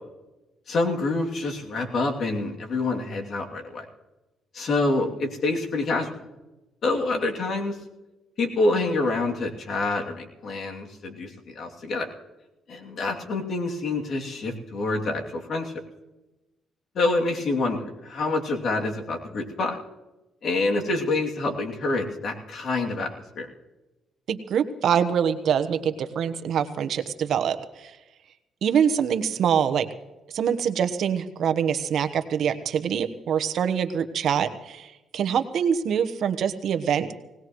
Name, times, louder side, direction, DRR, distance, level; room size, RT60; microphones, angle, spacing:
voice 1, 0.7-3.8 4.5-6.2 6.8-7.8 8.4-12.1 12.7-15.7 16.9-19.8 20.4-23.1 23.4-23.5, left 2 dB, 60° left, 1 dB, 2.8 m, -27 dB
voice 2, 24.3-28.0 28.6-29.9 30.3-37.1, right 8 dB, 65° right, 9 dB, 1.1 m, -25 dB
20.0 x 19.0 x 3.1 m, 1.0 s
cardioid pair, 90°, 0 cm